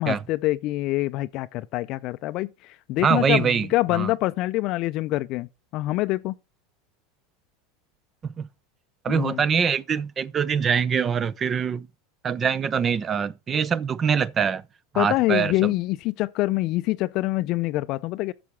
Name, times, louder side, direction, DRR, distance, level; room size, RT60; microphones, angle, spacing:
voice 1, 0.0-6.3 9.1-9.4 15.0-18.3, left 18 dB, 55° left, 0.5 m, -25 dB
voice 2, 3.0-4.1 8.2-8.5 9.0-11.9 12.2-14.6 14.9-15.7, right 7 dB, 30° right, 0.7 m, -24 dB
7.4 x 7.0 x 7.0 m
hypercardioid pair, 95°, 0 cm